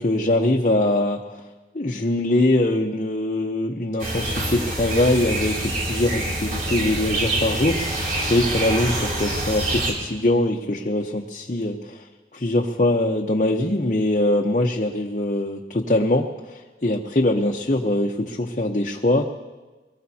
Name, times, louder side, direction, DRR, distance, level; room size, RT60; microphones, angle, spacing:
voice 1, 0.0-1.4 1.7-12.0 12.3-19.3, left 1 dB, 40° left, 0 dB, 0.8 m, -22 dB
sound 1, 4.0-9.9, right 1 dB, 50° right, 4.3 m, -26 dB
23.0 x 19.5 x 2.8 m, 1.2 s
head